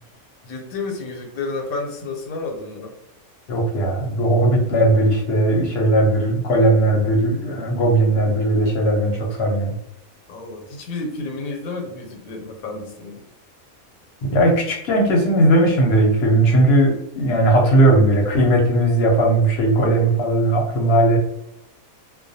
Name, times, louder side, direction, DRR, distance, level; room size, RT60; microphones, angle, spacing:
voice 1, 0.4-2.9 10.3-13.2, left 3 dB, 90° left, 3 dB, 1.0 m, -31 dB
voice 2, 3.5-9.7 14.2-21.2, right 1 dB, 60° left, 0 dB, 0.7 m, -17 dB
2.3 x 2.2 x 2.6 m, 0.79 s
omnidirectional pair, 1.5 m